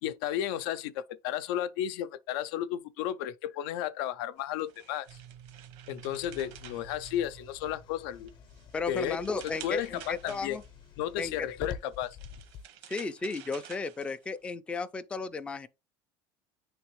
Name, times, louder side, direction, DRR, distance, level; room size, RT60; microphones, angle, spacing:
voice 1, 0.0-5.1 5.9-8.3 8.9-9.2 9.4-10.6 11.0-12.2, left 11 dB, 85° left, 0.5 m, -33 dB
sound 1, 4.4-7.7 8.2-10.9 11.8-14.5, right 10 dB, 80° right, 0.9 m, -51 dB
sound 2, 5.1-9.7, right 9 dB, 60° right, 0.6 m, -53 dB
sound 3, 6.2-12.7, left 7 dB, 45° left, 0.7 m, -48 dB
voice 2, 8.7-10.6 11.2-11.3 12.9-15.7, left 4 dB, 10° left, 0.3 m, -34 dB
9.5 x 3.4 x 3.1 m
cardioid pair, 160°, 12 cm